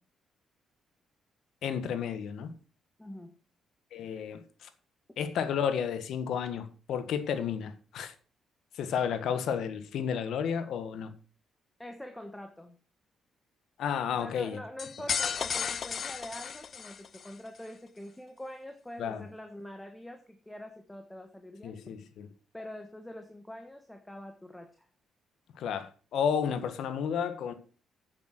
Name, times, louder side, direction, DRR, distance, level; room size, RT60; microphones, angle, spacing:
voice 1, 1.6-2.5 3.9-4.7 5.2-8.1 8.7-11.1 13.8-14.6 19.0-19.2 21.6-22.3 25.6-27.5, left 7 dB, 75° left, 1.5 m, -32 dB
voice 2, 3.0-3.4 11.8-12.8 14.1-21.8 22.5-24.9, left 1 dB, 5° left, 1.5 m, -45 dB
sound 1, 14.8-17.3, left 7 dB, 50° left, 0.4 m, -34 dB
8.9 x 8.2 x 6.0 m
cardioid pair, 90°, 0 cm